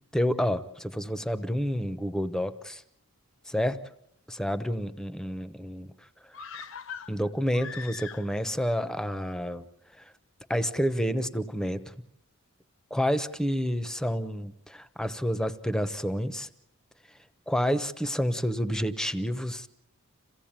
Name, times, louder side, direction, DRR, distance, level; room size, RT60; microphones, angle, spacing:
voice 1, 0.1-2.8 3.5-3.8 4.3-5.9 7.1-9.6 10.0-10.1 10.5-11.9 12.9-16.5 17.5-19.7, equal, 5° left, 12 dB, 0.9 m, -29 dB
sound 1, 6.3-8.6 8.9-9.0, left 6 dB, 65° left, 1.0 m, -42 dB
27.5 x 16.5 x 8.9 m, 0.80 s
head